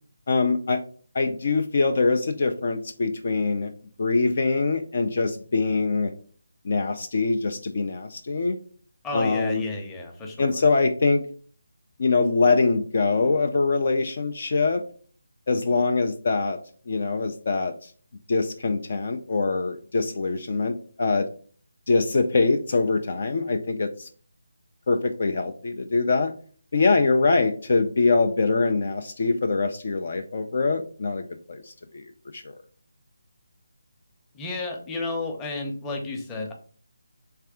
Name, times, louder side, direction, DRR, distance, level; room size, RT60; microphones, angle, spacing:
voice 1, 0.3-0.8 1.1-3.7 4.0-6.1 6.6-8.6 9.1-9.6 10.4-11.2 12.0-14.8 15.5-16.6 16.9-17.7 18.3-21.3 21.9-24.1 24.9-26.3 26.7-31.2 31.5-31.6 31.9-32.0 32.3-32.4, left 3 dB, 50° left, 6 dB, 0.4 m, -23 dB
voice 2, 9.0-10.5 34.3-36.5, left 3 dB, 10° left, 1 dB, 0.8 m, -32 dB
3.4 x 3.3 x 4.8 m, 0.43 s
figure-of-eight pair, 150°, 0 cm